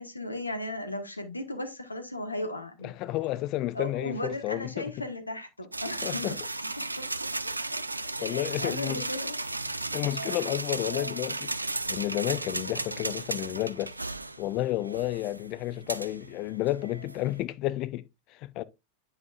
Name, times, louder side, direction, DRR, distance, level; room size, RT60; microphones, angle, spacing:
voice 1, 0.0-2.9 3.7-6.3 7.0-7.1 7.6-9.8, left 1 dB, 85° left, 1.2 m, -36 dB
voice 2, 2.8-5.1 6.0-6.3 8.2-9.1 9.9-14.0 14.4-18.6, left 16 dB, 40° left, 0.5 m, -31 dB
sound 1, 5.7-17.4, right 2 dB, 85° right, 0.4 m, -35 dB
9.1 x 5.5 x 2.4 m
figure-of-eight pair, 90°, 0 cm